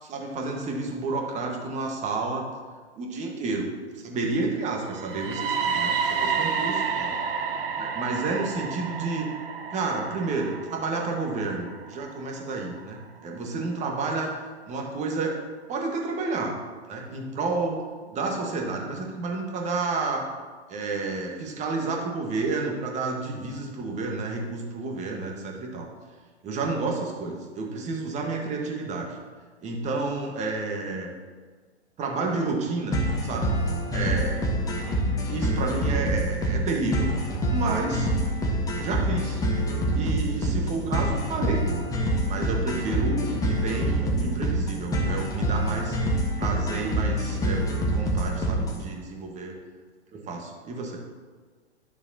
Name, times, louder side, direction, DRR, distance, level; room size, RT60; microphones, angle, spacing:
voice 1, 0.0-2.5 3.0-3.7 4.0-7.1 7.8-9.3 9.7-14.3 14.6-15.4 15.7-16.5 16.9-17.8 18.1-20.2 20.7-25.9 26.4-29.2 29.6-31.1 32.0-33.6 33.9-34.5 35.3-37.1 37.5-38.1 38.8-39.4 39.9-41.7 42.3-46.0 46.4-49.5 50.1-51.0, right 3 dB, 20° right, 1 dB, 1.4 m, -30 dB
sound 1, 4.9-12.8, right 6 dB, 55° right, 1.0 m, -30 dB
sound 2, 32.9-48.9, right 1 dB, 10° left, 1.1 m, -26 dB
11.0 x 6.7 x 2.8 m, 1.5 s
figure-of-eight pair, 115°, 34 cm